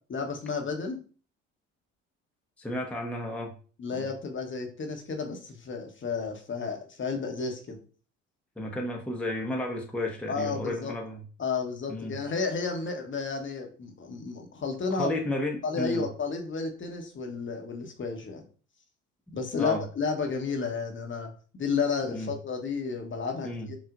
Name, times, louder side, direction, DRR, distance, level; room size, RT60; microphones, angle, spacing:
voice 1, 0.1-1.0 3.8-7.8 10.3-10.9 11.4-15.1 15.6-18.4 19.3-23.8, left 5 dB, 35° left, 3 dB, 1.0 m, -32 dB
voice 2, 2.6-3.5 3.9-4.1 8.6-11.2 11.9-12.2 14.9-16.1 19.3-19.8 22.1-22.3 23.4-23.7, left 1 dB, 5° left, 1 dB, 0.8 m, -33 dB
5.9 x 2.4 x 2.5 m, 0.39 s
hypercardioid pair, 60°, 36 cm